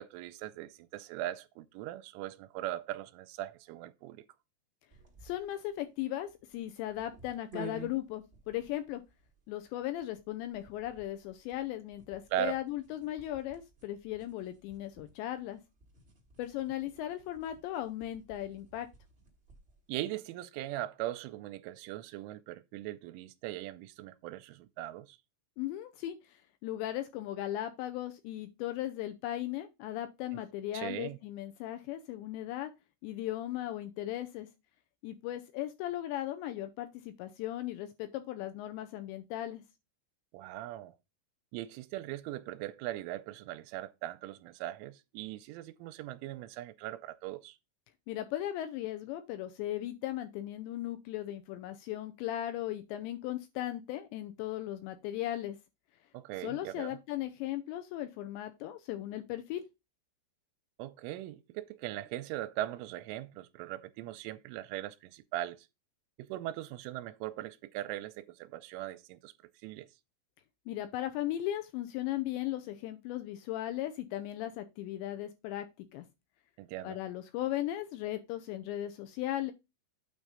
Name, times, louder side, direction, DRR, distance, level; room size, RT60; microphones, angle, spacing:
voice 1, 0.0-4.3 12.3-12.6 19.9-25.2 30.7-31.2 40.3-40.9 41.5-47.6 56.1-57.0 60.8-65.7 66.2-69.3 69.6-69.9 76.6-77.0, right 14 dB, 85° right, 3.1 m, -40 dB
sound 1, 4.9-19.8, right 4 dB, 70° right, 0.5 m, -54 dB
voice 2, 5.2-9.0 9.5-15.6 16.4-18.9 25.6-32.7 33.0-34.5 35.0-39.6 48.1-55.6 56.4-59.6 70.7-76.0 76.8-79.5, left 13 dB, 80° left, 2.7 m, -37 dB
8.9 x 3.6 x 5.5 m
omnidirectional pair, 5.6 m